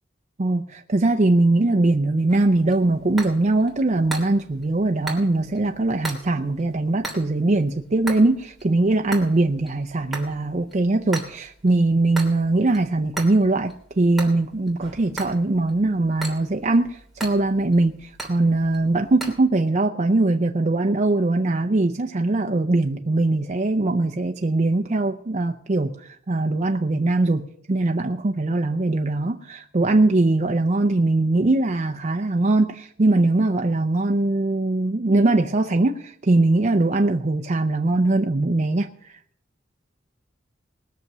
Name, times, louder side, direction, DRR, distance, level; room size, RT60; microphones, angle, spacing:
voice 1, 0.4-38.9, right 2 dB, 35° right, 0.6 m, -21 dB
sound 1, 2.3-19.4, right 2 dB, ahead, 2.9 m, -39 dB
19.5 x 6.7 x 6.0 m
head